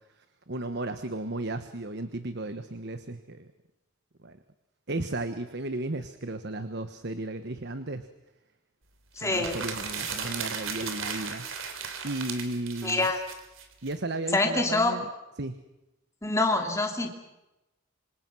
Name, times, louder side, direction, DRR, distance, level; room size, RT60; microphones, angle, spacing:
voice 1, 0.2-3.5 4.2-4.4 4.9-8.1 9.2-11.5 12.0-13.1 13.8-15.1 15.4-15.6, right 2 dB, 50° right, 10 dB, 1.3 m, -34 dB
voice 2, 9.2-9.5 12.8-13.2 14.3-15.0 16.2-17.1, left 2 dB, 15° left, 3 dB, 3.1 m, -25 dB
sound 1, 9.2-13.9, right 6 dB, 70° right, 3.5 m, -36 dB
27.0 x 26.0 x 6.2 m, 0.97 s
head